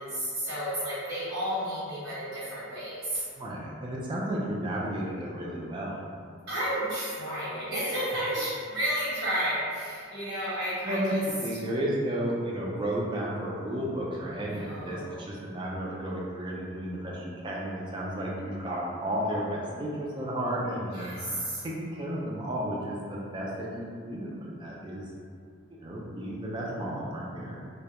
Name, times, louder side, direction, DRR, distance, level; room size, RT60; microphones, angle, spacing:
voice 1, 0.0-3.2 6.5-11.2 14.3-15.3 20.9-21.6, equal, 70° right, -11 dB, 1.0 m, -32 dB
voice 2, 3.4-6.1 10.9-11.1 11.4-25.0 25.8-27.6, right 1 dB, 20° right, -4 dB, 0.3 m, -33 dB
2.2 x 2.1 x 2.8 m, 2.3 s
head